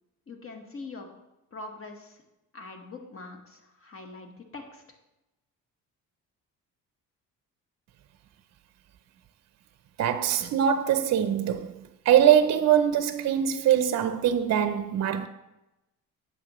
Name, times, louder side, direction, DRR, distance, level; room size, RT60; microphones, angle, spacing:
voice 1, 0.3-1.1 1.5-2.2 2.5-4.8, left 3 dB, 40° left, 1.4 m, -43 dB
voice 2, 10.0-11.7 12.1-15.3, right 9 dB, 50° right, 0.5 m, -22 dB
8.4 x 7.0 x 3.0 m
cardioid pair, 90°, 34 cm